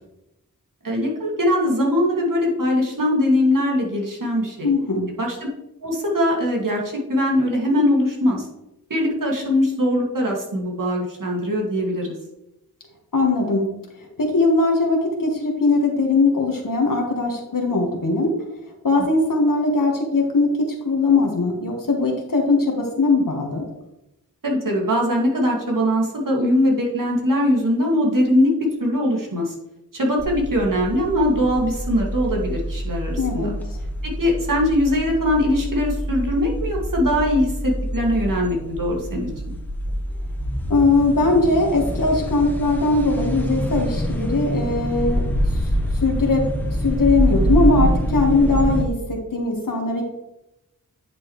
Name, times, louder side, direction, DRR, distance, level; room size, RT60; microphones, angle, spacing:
voice 1, 0.8-4.7 5.2-5.4 5.8-6.8 7.1-8.4 8.9-12.1 24.4-29.5 29.9-33.5 34.0-39.3, left 1 dB, 60° right, -1 dB, 2.2 m, -21 dB
voice 2, 4.6-5.1 13.1-13.7 14.2-18.3 18.8-20.5 20.8-23.6 33.2-33.5 40.7-45.2 46.0-46.5 46.8-50.0, left 3 dB, 65° left, 1 dB, 1.5 m, -20 dB
sound 1, 30.2-48.8, equal, 5° left, 1.4 m, -26 dB
9.7 x 6.0 x 3.2 m, 0.90 s
wide cardioid pair, 60°, 36 cm